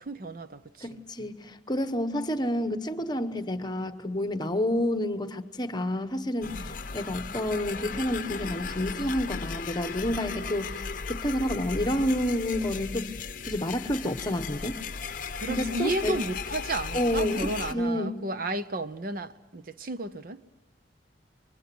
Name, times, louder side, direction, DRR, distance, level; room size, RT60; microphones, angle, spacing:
voice 1, 0.0-1.0 15.3-20.4, right 2 dB, 50° right, 0.8 m, -33 dB
voice 2, 0.8-13.1 13.5-14.8 15.5-16.2 16.9-18.2, left 1 dB, 25° left, 1.1 m, -29 dB
sound 1, 6.4-17.7, left 5 dB, 50° left, 0.8 m, -36 dB
29.5 x 24.0 x 6.1 m
head